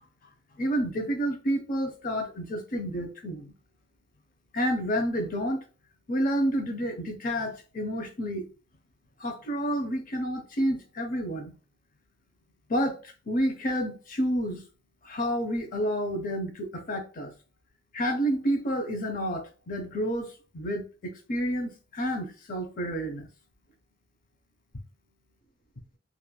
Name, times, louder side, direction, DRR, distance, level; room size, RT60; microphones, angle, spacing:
voice 1, 0.6-3.5 4.5-5.6 6.1-8.5 9.2-11.5 12.7-13.0 13.3-14.6 15.1-17.3 17.9-23.3, equal, 50° left, 0.6 m, -29 dB
3.0 x 2.5 x 2.3 m
head